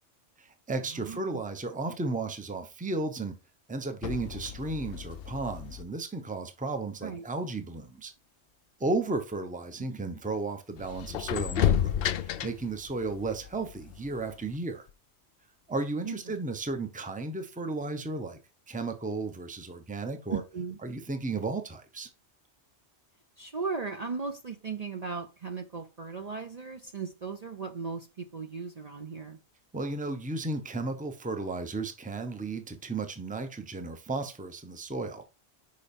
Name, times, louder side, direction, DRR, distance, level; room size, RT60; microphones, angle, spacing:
voice 1, 0.4-3.4 3.7-8.1 8.8-14.8 15.7-18.4 18.7-20.4 20.8-22.1 29.7-35.2, right 3 dB, 10° right, 0.7 m, -34 dB
voice 2, 0.9-1.4 7.0-7.2 16.0-16.2 20.3-20.8 23.4-29.4, right 5 dB, 40° right, 0.7 m, -37 dB
sound 1, 4.0-5.8 10.3-10.4 10.8-14.6 14.9-15.0, left 10 dB, 65° left, 0.7 m, -32 dB
5.5 x 5.3 x 4.3 m
omnidirectional pair, 1.2 m